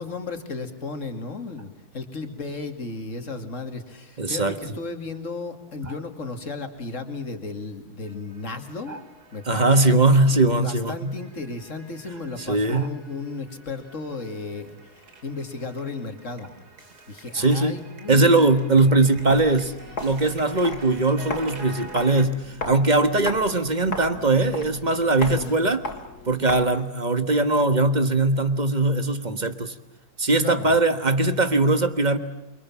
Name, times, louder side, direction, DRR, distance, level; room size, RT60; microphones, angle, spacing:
voice 1, 0.0-9.0 9.3-10.0 10.6-16.5 17.1-18.5 25.2-25.6 30.4-30.8, left 3 dB, 50° left, 6 dB, 2.7 m, -34 dB
voice 2, 4.2-4.6 5.8-5.9 8.9-9.0 9.5-11.1 12.5-12.9 17.3-17.8 18.1-19.7 20.0-25.8 26.3-29.7 30.2-32.2, right 2 dB, 30° right, 10 dB, 1.4 m, -20 dB
sound 1, 8.0-22.3, right 2 dB, 90° right, 3.5 m, -47 dB
Walk footsteps, 19.2-26.9, left 3 dB, 85° left, 3.3 m, -36 dB
28.5 x 24.0 x 7.3 m, 0.98 s
omnidirectional pair, 1.6 m